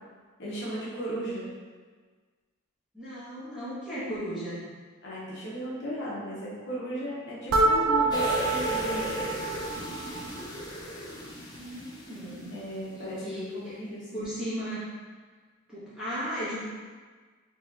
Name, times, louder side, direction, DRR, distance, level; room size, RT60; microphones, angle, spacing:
voice 1, 0.4-1.5 5.0-9.2 12.5-14.3, equal, 55° left, -7 dB, 0.9 m, -36 dB
voice 2, 2.9-4.6 11.6-12.5 12.9-13.7 14.1-14.9 15.7-16.6, equal, 5° right, -13 dB, 1.3 m, -36 dB
sound 1, 7.5-10.4, right 3 dB, 85° right, 0.4 m, -27 dB
sound 2, 8.1-12.9 13.3-13.4, equal, 20° left, 0.4 m, -36 dB
4.1 x 2.9 x 2.4 m, 1.5 s
head